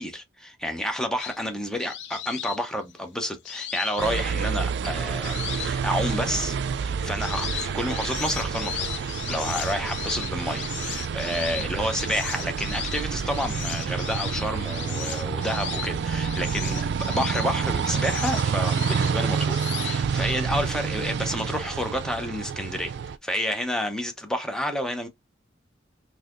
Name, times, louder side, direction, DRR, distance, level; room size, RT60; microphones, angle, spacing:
voice 1, 0.0-22.9 23.2-25.1, equal, 5° left, 0.7 m, -30 dB
sound 1, 1.2-4.7 5.2-6.3 6.8-20.3, left 11 dB, 70° left, 0.5 m, -37 dB
sound 2, 4.0-23.1, right 6 dB, 65° right, 0.3 m, -28 dB
4.0 x 2.8 x 2.5 m
head